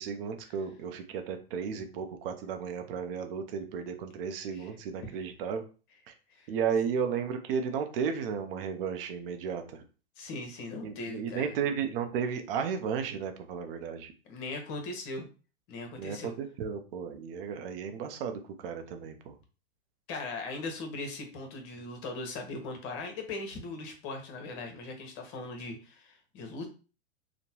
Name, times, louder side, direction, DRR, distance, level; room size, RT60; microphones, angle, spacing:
voice 1, 0.0-5.6 6.1-6.2 6.5-9.8 10.8-14.1 16.0-19.3, right 7 dB, 55° right, 6 dB, 0.6 m, -34 dB
voice 2, 10.2-11.5 14.3-15.3 15.7-16.3 20.1-26.7, left 3 dB, 50° left, 4 dB, 1.0 m, -39 dB
2.9 x 2.1 x 2.8 m, 0.35 s
hypercardioid pair, 105°, 33 cm